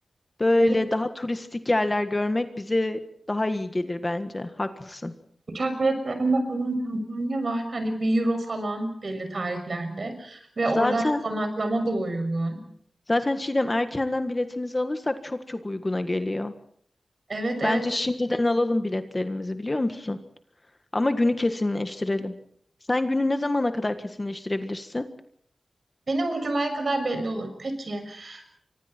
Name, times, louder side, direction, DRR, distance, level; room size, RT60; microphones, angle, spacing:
voice 1, 0.4-3.0 3.3-5.1 10.7-11.2 13.1-16.5 17.6-20.2 20.9-22.3 22.9-25.0, left 2 dB, 25° left, 8 dB, 1.6 m, -26 dB
voice 2, 5.5-12.6 17.3-17.8 26.1-28.6, right 2 dB, 50° right, 7 dB, 6.4 m, -27 dB
29.5 x 25.0 x 4.5 m, 0.64 s
wide cardioid pair, 115°, 0 cm